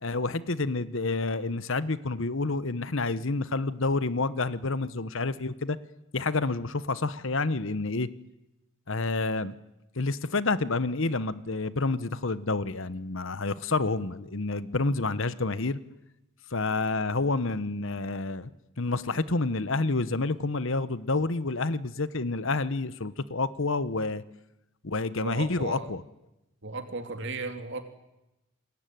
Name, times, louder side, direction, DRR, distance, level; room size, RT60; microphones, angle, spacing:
voice 1, 0.0-5.8 6.1-8.1 8.9-9.5 10.0-15.8 16.5-18.5 18.8-24.2 24.8-26.0, left 3 dB, 60° left, 15 dB, 1.1 m, -29 dB
voice 2, 25.2-25.9 26.6-27.8, right 3 dB, 55° right, 7 dB, 3.2 m, -35 dB
28.0 x 22.0 x 9.4 m, 0.93 s
head